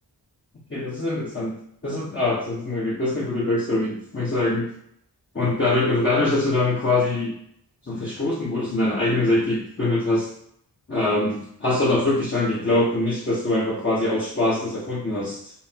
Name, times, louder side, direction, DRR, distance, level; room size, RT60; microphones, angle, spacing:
voice 1, 0.7-1.5 1.8-4.7 5.3-7.4 7.9-10.3 10.9-15.5, left 2 dB, 30° left, -7 dB, 1.0 m, -23 dB
5.5 x 2.0 x 2.8 m, 0.68 s
wide cardioid pair, 70°, 42 cm